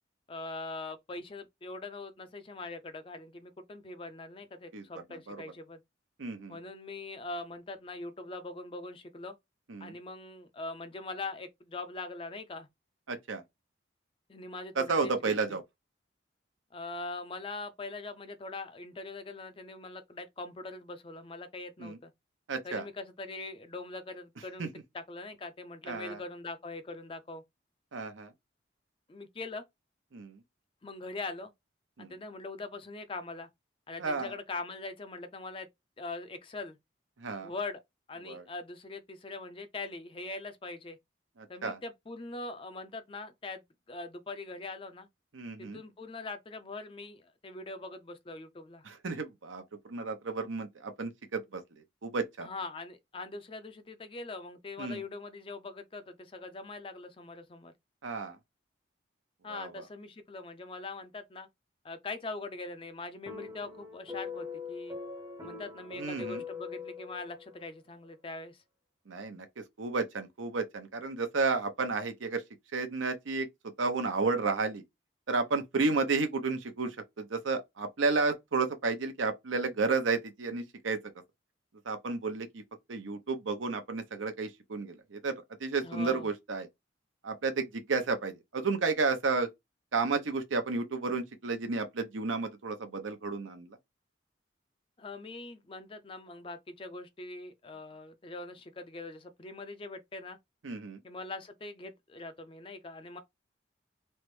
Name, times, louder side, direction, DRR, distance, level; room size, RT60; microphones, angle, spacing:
voice 1, 0.3-5.8 6.5-9.3 9.8-12.7 14.3-15.6 16.7-22.1 22.6-27.4 29.1-29.6 30.8-31.5 32.0-33.5 33.9-35.7 36.0-36.8 37.4-37.8 38.1-41.0 41.5-43.6 43.9-45.1 45.6-48.8 52.4-57.7 59.4-61.5 61.8-65.0 65.4-68.6 85.8-86.3 95.0-100.4 101.0-103.2, left 3 dB, 30° left, 0.4 m, -42 dB
voice 2, 6.2-6.6 9.7-9.9 13.1-13.4 14.8-15.6 21.8-22.0 22.5-22.8 24.6-24.7 25.9-26.2 27.9-28.3 30.1-30.4 32.0-32.1 34.0-34.3 37.2-37.5 38.2-38.4 41.6-41.8 45.3-45.8 48.9-51.6 52.0-52.5 54.8-55.0 58.0-58.4 59.5-59.7 66.0-66.4 69.1-69.5 69.8-72.4 72.7-73.5 73.8-74.8 75.3-81.0 81.9-82.6 82.9-85.3 85.6-86.7 87.2-89.5 89.9-93.8 100.6-101.0, right 4 dB, 90° right, 0.7 m, -32 dB
sound 1, 63.3-67.7, left 5 dB, 20° right, 0.6 m, -42 dB
3.3 x 2.0 x 3.0 m
head